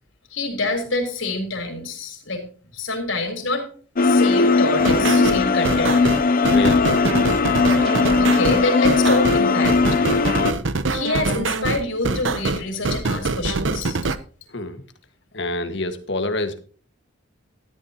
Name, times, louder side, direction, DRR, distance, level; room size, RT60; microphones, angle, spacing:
voice 1, 0.3-2.4 2.7-3.7 4.0-6.0 7.8-10.0 10.9-14.0, left 2 dB, 85° left, 3 dB, 4.0 m, -26 dB
sound 1, 4.0-10.5, left 4 dB, 45° left, 0.6 m, -18 dB
sound 2, 4.8-14.2, right 3 dB, 80° right, 0.9 m, -24 dB
voice 2, 6.5-6.9 14.5-14.8 15.3-16.6, left 2 dB, 65° left, 8 dB, 1.7 m, -27 dB
13.5 x 12.0 x 2.9 m, 0.41 s
head